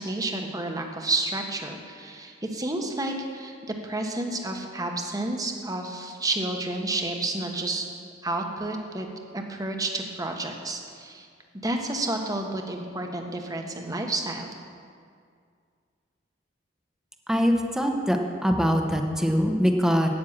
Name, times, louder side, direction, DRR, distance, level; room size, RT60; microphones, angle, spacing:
voice 1, 0.0-3.5 3.8-7.9 8.2-9.1 9.3-11.3 11.6-14.5, right 2 dB, 20° right, 3 dB, 1.2 m, -30 dB
voice 2, 17.3-20.1, equal, 5° right, 3 dB, 1.0 m, -23 dB
9.8 x 9.3 x 7.3 m, 2.2 s
head